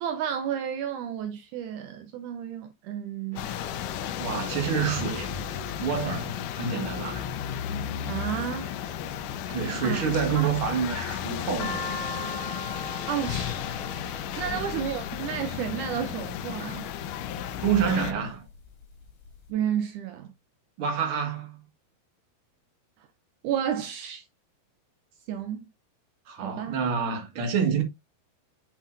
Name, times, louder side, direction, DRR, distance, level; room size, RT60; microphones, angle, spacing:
voice 1, 0.0-3.5 8.1-8.7 9.8-10.0 13.1-13.6 14.4-16.9 19.5-20.3 23.0-23.1 23.4-24.3 25.3-25.7 26.4-26.8, right 9 dB, 80° right, 1.8 m, -31 dB
sound 1, 3.3-14.6, right 1 dB, 25° right, 1.8 m, -49 dB
sound 2, 3.4-18.1, left 9 dB, 75° left, 2.0 m, -34 dB
voice 2, 4.2-5.3 5.8-7.3 9.5-11.9 14.3-14.7 17.6-18.4 20.8-21.6 26.3-27.8, right 7 dB, 45° right, 2.0 m, -28 dB
sound 3, 11.6-15.4 16.2-16.7 17.3-17.9 18.3-18.4 18.5-19.4, left 2 dB, 55° left, 3.4 m, -38 dB
7.4 x 6.4 x 2.5 m
omnidirectional pair, 4.4 m